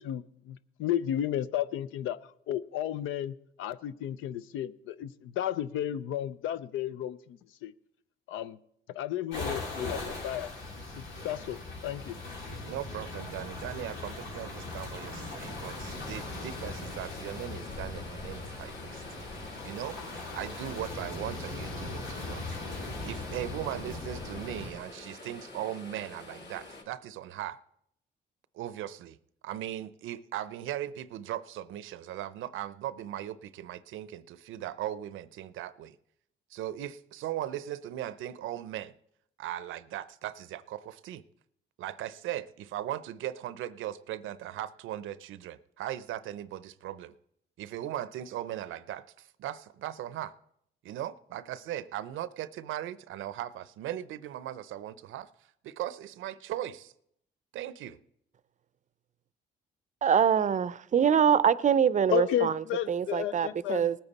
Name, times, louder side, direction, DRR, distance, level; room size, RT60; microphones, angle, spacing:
voice 1, 0.0-7.7 8.3-8.6 8.9-10.5 10.9-12.2 62.1-63.9, left 11 dB, 90° left, 0.5 m, -33 dB
sound 1, 9.3-24.7, left 2 dB, 75° left, 3.9 m, -39 dB
voice 2, 12.6-19.0 19.6-20.0 20.3-22.6 23.0-27.6 28.5-29.2 29.4-35.9 36.5-38.9 39.4-41.2 41.8-47.1 47.6-50.3 50.8-55.3 55.6-56.9 57.5-58.0, right 12 dB, 80° right, 0.6 m, -38 dB
sound 2, 15.4-26.8, left 3 dB, 60° left, 2.1 m, -48 dB
voice 3, 60.0-62.5 62.9-64.0, right 8 dB, 40° right, 0.5 m, -24 dB
19.0 x 8.9 x 4.1 m
cardioid pair, 90°, 20 cm